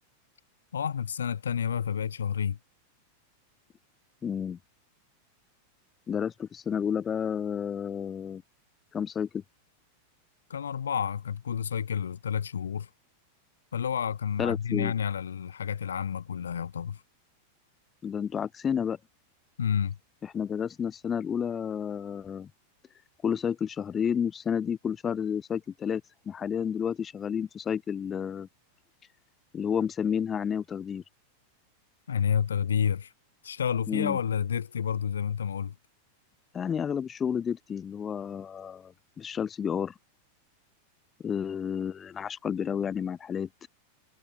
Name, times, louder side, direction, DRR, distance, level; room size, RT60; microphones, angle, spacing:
voice 1, 0.7-2.6 10.5-12.9 13.7-17.0 19.6-20.0 32.1-33.1 33.4-35.7, left 8 dB, 70° left, 0.4 m, -30 dB
voice 2, 4.2-4.6 6.1-8.4 8.9-9.4 14.4-14.9 18.0-19.0 20.3-22.5 23.2-28.5 29.5-31.0 33.9-34.2 36.5-39.9 41.2-43.5, left 7 dB, 20° left, 0.6 m, -31 dB
figure-of-eight pair, 90°, 0 cm